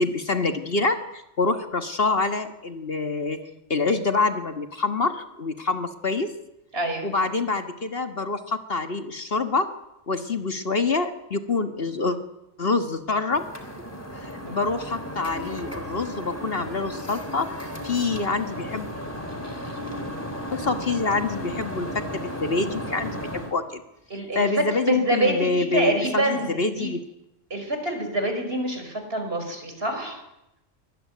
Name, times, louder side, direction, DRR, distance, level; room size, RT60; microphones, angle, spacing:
voice 1, 0.0-3.4 3.7-6.3 7.0-9.7 10.1-12.2 12.6-13.5 14.1-18.9 20.5-23.8 24.3-27.0, left 3 dB, 50° left, 7 dB, 1.6 m, -26 dB
voice 2, 6.7-7.1 14.4-14.6 24.1-24.5 24.8-26.9 27.5-30.2, right 1 dB, 50° right, 5 dB, 5.8 m, -26 dB
sound 1, 13.3-23.5, equal, 10° left, 3.3 m, -34 dB
24.0 x 20.5 x 9.4 m, 0.89 s
omnidirectional pair, 1.3 m